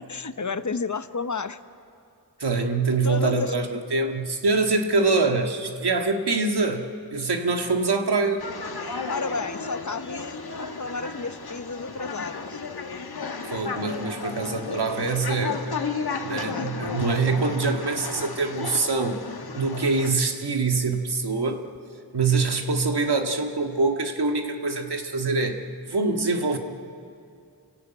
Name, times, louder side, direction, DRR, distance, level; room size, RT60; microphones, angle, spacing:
voice 1, 0.0-1.6 3.0-3.5 8.8-12.6 13.5-13.6 16.4-16.7, left 4 dB, 45° left, 11 dB, 1.0 m, -32 dB
voice 2, 2.4-8.4 13.5-15.6 16.2-19.2 19.5-21.6 22.1-25.6 25.9-26.6, right 3 dB, 80° right, 4 dB, 1.9 m, -24 dB
sound 1, 8.4-20.1, left 4 dB, 70° left, 1.6 m, -33 dB
28.5 x 16.0 x 9.1 m, 2.4 s
cardioid pair, 50°, 39 cm